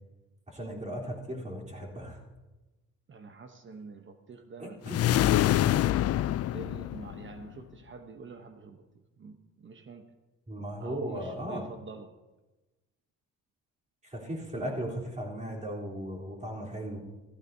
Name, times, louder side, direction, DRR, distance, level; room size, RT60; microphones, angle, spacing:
voice 1, 0.5-2.2 4.6-5.0 10.5-11.6 14.0-17.0, equal, 25° right, -3 dB, 3.6 m, -37 dB
voice 2, 3.1-5.3 6.5-8.8 9.2-10.1 10.8-12.1, right 3 dB, 40° right, 7 dB, 0.9 m, -46 dB
sound 1, 4.9-7.5, left 13 dB, 55° left, 0.4 m, -25 dB
15.5 x 14.5 x 2.7 m, 1.1 s
cardioid pair, 90°, 30 cm